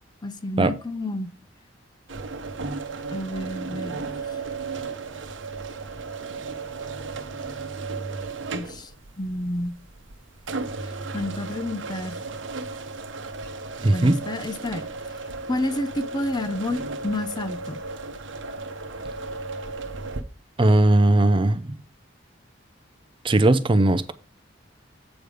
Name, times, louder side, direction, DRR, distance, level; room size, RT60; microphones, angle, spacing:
voice 1, 0.2-1.3 3.1-4.4 8.5-8.9 9.2-9.8 10.8-12.2 13.9-14.9 15.5-17.8, left 1 dB, 20° left, 0.5 m, -30 dB
sound 1, 2.1-20.2, right 3 dB, 75° right, 0.9 m, -35 dB
voice 2, 13.8-14.2 20.6-21.7 23.2-24.1, right 2 dB, 25° right, 0.5 m, -18 dB
8.0 x 5.2 x 4.9 m
head